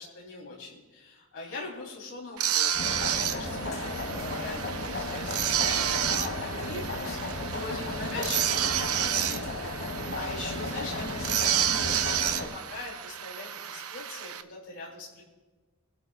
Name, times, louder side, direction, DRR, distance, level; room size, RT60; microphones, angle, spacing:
voice 1, 0.0-15.2, left 3 dB, 75° left, -5 dB, 3.8 m, -42 dB
sound 1, 2.4-14.4, right 10 dB, 80° right, 0.7 m, -30 dB
sound 2, 2.7-12.5, left 2 dB, 60° left, 2.6 m, -34 dB
26.0 x 12.0 x 2.5 m, 1.3 s
head